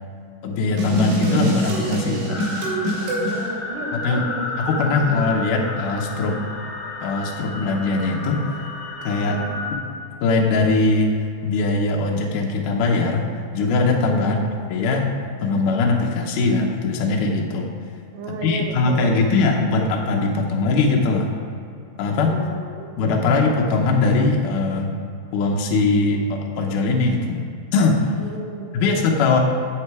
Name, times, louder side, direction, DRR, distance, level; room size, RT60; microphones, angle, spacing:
voice 1, 0.4-2.4 3.9-4.3 4.6-6.5 7.0-8.4 9.0-9.4 10.2-11.1 11.4-13.3 13.5-15.1 15.4-17.7 18.3-21.3 22.0-22.4 23.0-25.0 25.3-28.1 28.7-29.4, left 3 dB, 75° left, 0 dB, 1.9 m, -21 dB
sound 1, 0.8-3.4, right 1 dB, 70° right, 4.3 m, -24 dB
sound 2, 2.3-9.7, left 2 dB, 30° left, 1.3 m, -32 dB
voice 2, 3.3-5.8 6.3-6.5 9.3-9.6 14.1-14.5 18.1-19.6 22.3-23.4 28.2-29.4, right 3 dB, 90° right, 2 dB, 3.4 m, -35 dB
10.0 x 8.4 x 4.8 m, 2.5 s
omnidirectional pair, 4.9 m